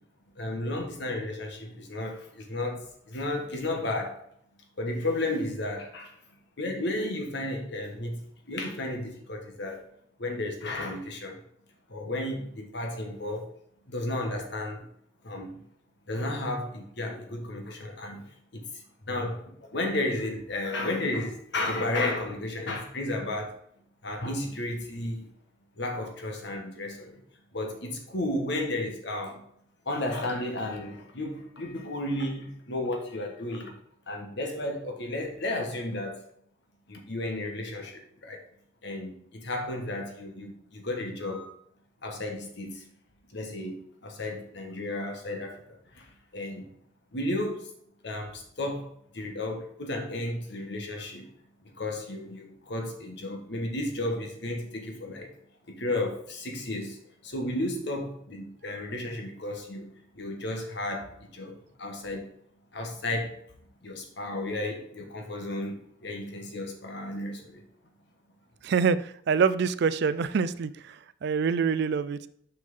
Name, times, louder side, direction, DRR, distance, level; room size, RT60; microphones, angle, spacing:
voice 1, 0.4-4.2 4.8-6.2 6.6-9.8 10.2-11.4 11.9-13.5 13.9-14.9 15.2-15.6 16.1-18.3 18.5-18.7 19.0-23.6 24.0-25.3 25.8-27.2 27.5-29.4 29.8-33.7 34.1-36.2 36.9-38.4 38.8-41.5 42.0-42.8 43.3-46.7 47.1-47.7 48.0-51.3 51.6-55.3 55.7-59.9 60.1-61.5 61.8-62.3 62.7-63.3 63.8-67.6, left 1 dB, 65° left, 3 dB, 1.4 m, -33 dB
voice 2, 68.6-72.2, right 5 dB, 60° right, 15 dB, 0.4 m, -26 dB
6.2 x 5.9 x 3.7 m, 0.69 s
head